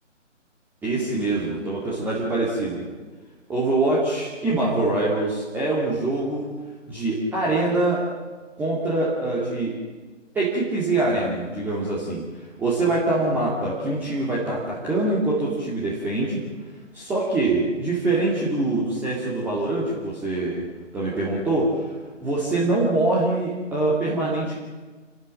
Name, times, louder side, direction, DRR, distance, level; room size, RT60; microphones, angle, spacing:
voice 1, 0.8-2.9 3.5-6.5 6.9-8.0 8.6-9.8 10.3-12.2 12.6-16.5 16.9-20.7 20.9-21.9 22.2-24.5, right 2 dB, 5° right, -6 dB, 2.3 m, -24 dB
29.0 x 13.5 x 7.5 m, 1.3 s
figure-of-eight pair, 155°, 38 cm